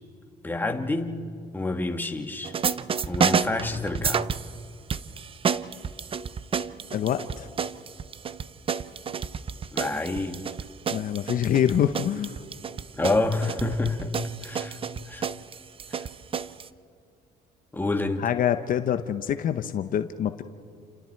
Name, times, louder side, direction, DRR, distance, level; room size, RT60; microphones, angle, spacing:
voice 1, 0.4-1.2 1.5-2.5 3.1-4.3 9.7-10.4 12.9-14.1 14.4-14.8 15.1-15.3 15.9-16.1 17.7-18.2, left 2 dB, 10° left, 5 dB, 1.8 m, -28 dB
sound 1, 2.4-4.6 4.9-16.7, right 6 dB, 35° right, 0.7 m, -30 dB
voice 2, 6.9-7.5 10.9-12.4 18.2-20.4, left 10 dB, 55° left, 10 dB, 0.8 m, -25 dB
29.5 x 28.0 x 4.6 m, 2.5 s
cardioid pair, 110°, 17 cm